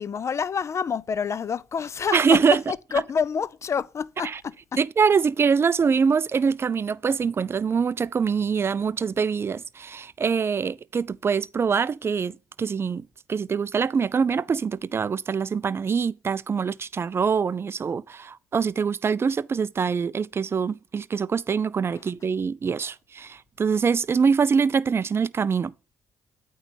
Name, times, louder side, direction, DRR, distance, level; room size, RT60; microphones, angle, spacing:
voice 1, 0.0-2.4 2.7-4.5 21.9-22.0, left 6 dB, 35° left, 0.4 m, -28 dB
voice 2, 2.1-2.6 4.2-4.4 4.8-13.0 13.3-25.7, right 6 dB, 30° right, 0.4 m, -24 dB
8.7 x 3.2 x 5.3 m
hypercardioid pair, 50°, 8 cm